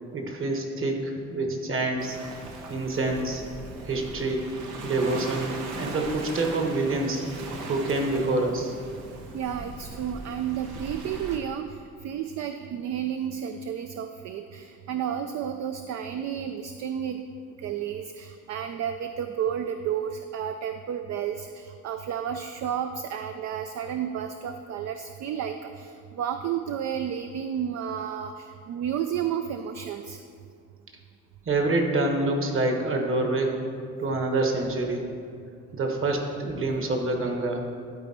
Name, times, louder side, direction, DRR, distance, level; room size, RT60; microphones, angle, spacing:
voice 1, 0.1-2.2 2.7-3.4 3.9-4.5 4.8-7.2 7.7-8.7 31.5-33.7 34.0-35.1 35.7-37.7, right 2 dB, 45° right, 3 dB, 1.3 m, -26 dB
Waves surf, 2.0-11.4, right 3 dB, 85° right, 0.9 m, -39 dB
voice 2, 9.3-11.7 12.0-17.2 17.6-30.2, right 9 dB, 60° right, 7 dB, 0.4 m, -32 dB
12.5 x 4.1 x 4.3 m, 2.3 s
cardioid pair, 90°, 30 cm